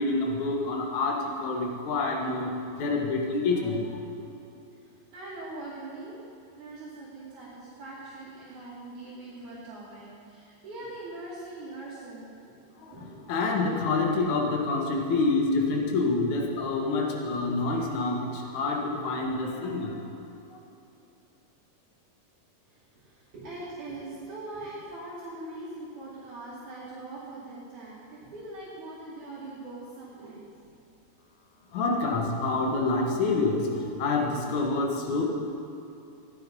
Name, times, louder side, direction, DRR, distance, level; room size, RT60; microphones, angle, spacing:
voice 1, 0.0-3.9 12.8-20.0 31.7-35.2, left 3 dB, 60° left, 1 dB, 2.7 m, -27 dB
voice 2, 4.8-6.2 6.6-12.3 12.9-13.3 22.7-30.5, right 2 dB, 55° right, -10 dB, 3.9 m, -42 dB
16.5 x 11.0 x 5.5 m, 2.8 s
omnidirectional pair, 4.3 m